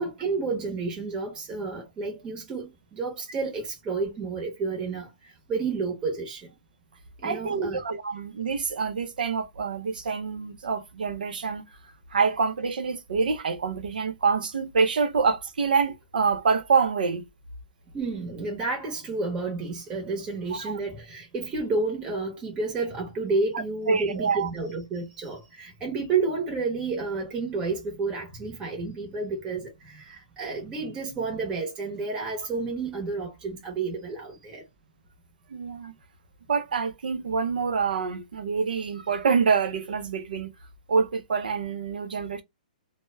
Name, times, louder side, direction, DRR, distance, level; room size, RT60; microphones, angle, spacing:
voice 1, 0.0-5.1 5.5-6.5 7.2-7.8 17.9-34.6, right 4 dB, 15° right, 0.9 m, -30 dB
voice 2, 7.2-11.6 12.1-17.2 20.5-20.7 23.5-24.5 35.5-35.9 36.5-40.5 40.9-42.4, right 5 dB, 75° right, 0.6 m, -26 dB
2.1 x 2.1 x 3.2 m
hypercardioid pair, 145°, 5 cm